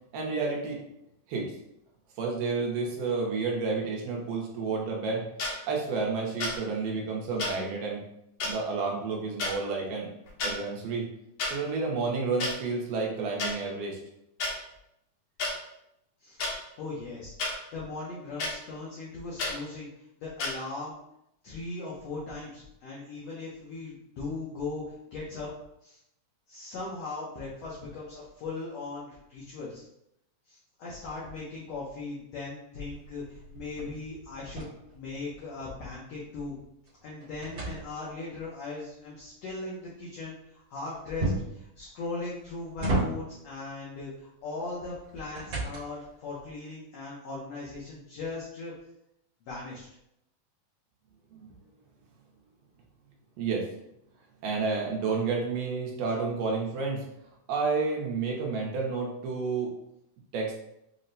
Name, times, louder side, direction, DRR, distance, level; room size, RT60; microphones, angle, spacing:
voice 1, 0.1-0.8 1.3-1.5 2.2-5.3 5.7-8.0 8.4-10.1 10.4-11.1 11.4-14.0 51.3-51.5 53.4-53.7 54.4-57.0 57.5-59.7 60.3-60.5, right 4 dB, 80° right, -1 dB, 2.2 m, -30 dB
sound 1, 5.4-5.5 6.4-6.6 7.4-7.5 8.4-8.5 9.4-9.5 10.3-10.5 11.4-11.5 12.4-12.5 13.4-13.5 14.4-14.5 15.4-15.5 16.4-16.5 17.4-17.5 18.4-18.5 19.4-19.5 20.4-20.5, left 3 dB, 70° left, 1.9 m, -30 dB
voice 2, 16.8-17.3 17.7-19.9 20.2-21.0 21.4-25.5 25.8-26.0 26.5-29.8 30.5-34.7 34.9-36.6 37.0-48.7 49.4-49.9, left 3 dB, 90° left, -6 dB, 1.4 m, -39 dB
sound 2, 32.8-35.7 36.1-38.4 41.2-41.7 42.3-43.5 44.8-46.1, right 2 dB, 60° right, 1.7 m, -34 dB
6.2 x 2.1 x 2.6 m, 0.80 s
omnidirectional pair, 4.0 m